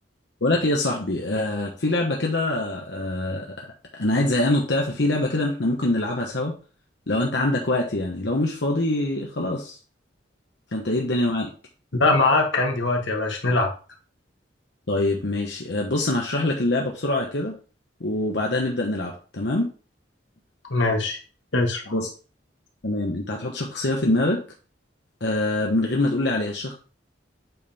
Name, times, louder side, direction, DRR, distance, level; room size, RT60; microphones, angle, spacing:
voice 1, 0.4-3.7 4.0-6.5 7.1-9.7 10.7-11.5 14.9-17.5 18.0-19.7 21.9-22.1 22.8-24.4 25.2-26.7, left 2 dB, 70° left, -1 dB, 1.2 m, -24 dB
voice 2, 12.0-13.7 20.7-21.2 21.5-21.9, left 2 dB, 90° left, 2 dB, 1.6 m, -21 dB
8.3 x 4.4 x 3.5 m, 0.37 s
head